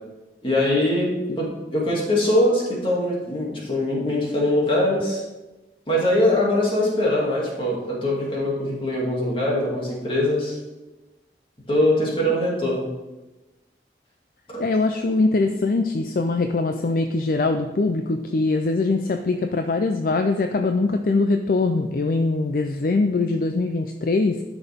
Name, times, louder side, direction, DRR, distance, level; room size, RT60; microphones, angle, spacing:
voice 1, 0.4-1.1 1.4-5.2 5.9-10.6 11.7-12.9 14.5-14.6, left 1 dB, 30° left, -4 dB, 2.4 m, -22 dB
voice 2, 14.6-24.4, left 3 dB, 50° left, 6 dB, 0.4 m, -22 dB
12.5 x 6.0 x 3.5 m, 1.1 s
head